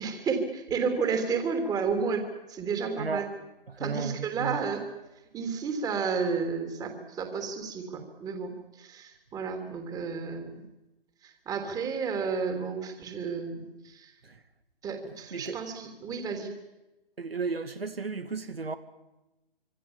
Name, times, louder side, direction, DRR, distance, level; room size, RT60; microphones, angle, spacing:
voice 1, 0.0-3.3 3.8-4.8 5.3-10.6 11.2-14.1 14.8-16.5, right 5 dB, 10° right, 3.4 m, -32 dB
voice 2, 3.0-3.3 3.7-4.6 14.2-14.4 15.3-15.6 17.2-18.8, right 4 dB, 80° right, 2.4 m, -34 dB
26.5 x 25.5 x 7.4 m
figure-of-eight pair, 140°, 29 cm